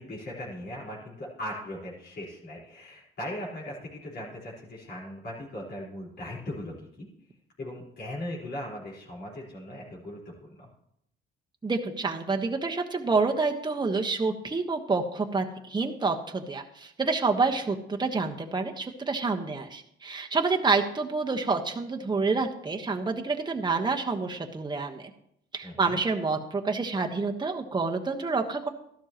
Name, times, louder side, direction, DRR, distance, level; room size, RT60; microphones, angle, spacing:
voice 1, 0.0-7.1 7.6-10.7 25.6-26.0, left 1 dB, 55° left, -5 dB, 4.6 m, -39 dB
voice 2, 11.6-25.1 25.5-28.7, right 4 dB, 20° right, 3 dB, 1.3 m, -28 dB
13.0 x 12.0 x 3.0 m, 0.75 s
cardioid pair, 90°, 20 cm